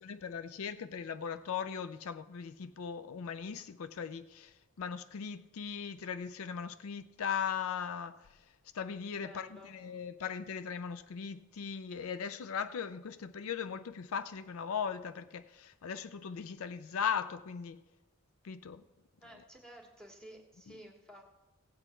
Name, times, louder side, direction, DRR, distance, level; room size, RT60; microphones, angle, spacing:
voice 1, 0.0-4.5 4.8-8.2 8.7-17.8 18.4-18.8, left 7 dB, 80° left, 0.4 m, -38 dB
voice 2, 9.1-9.9 19.2-21.2, equal, 5° left, 1.6 m, -53 dB
16.0 x 8.2 x 4.4 m
head